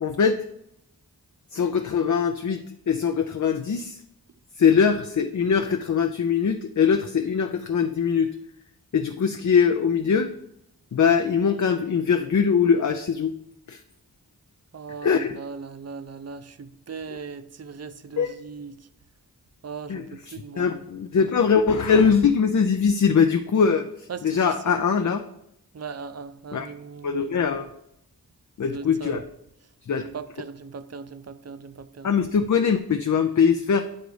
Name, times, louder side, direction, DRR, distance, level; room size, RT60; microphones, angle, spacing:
voice 1, 0.0-0.4 1.5-4.0 4.6-8.3 8.9-10.3 10.9-13.3 13.7-13.8 15.0-15.4 18.2-18.4 19.9-25.2 26.5-26.7 27.0-27.7 28.6-29.2 29.9-30.1 32.0-33.8, left 6 dB, 50° left, 0.5 m, -22 dB
voice 2, 14.7-18.8 19.6-20.7 24.1-24.5 25.7-27.4 28.7-29.3 30.0-32.1, right 5 dB, 40° right, 0.5 m, -38 dB
8.1 x 4.0 x 4.8 m
wide cardioid pair, 45°, 38 cm